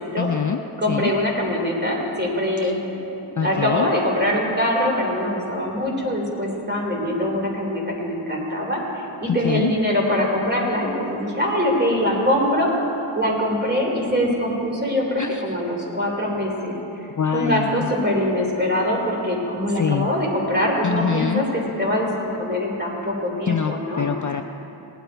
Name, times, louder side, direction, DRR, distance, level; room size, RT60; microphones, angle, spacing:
voice 1, 0.2-0.6 0.9-1.1 2.6-2.8 3.4-3.9 9.3-9.7 15.2-15.6 17.2-17.9 19.7-20.1 20.8-21.4 23.5-24.4, left 7 dB, 40° left, 6 dB, 0.4 m, -24 dB
voice 2, 0.8-2.8 3.2-12.7 13.1-16.7 17.0-17.1 17.3-24.0, left 1 dB, 20° right, -2 dB, 3.0 m, -23 dB
18.5 x 10.5 x 4.5 m, 3.0 s
wide cardioid pair, 80°, 49 cm